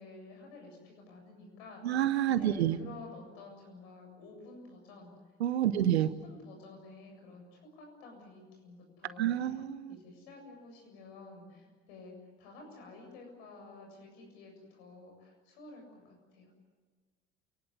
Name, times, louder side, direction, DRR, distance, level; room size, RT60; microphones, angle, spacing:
voice 1, 0.0-5.1 5.6-9.6 9.9-16.5, left 3 dB, 70° left, 2 dB, 7.6 m, -51 dB
voice 2, 1.8-2.8 5.4-6.1 9.2-10.0, right 11 dB, 80° right, 14 dB, 1.0 m, -28 dB
28.0 x 19.5 x 9.7 m, 1.4 s
hypercardioid pair, 55°, 32 cm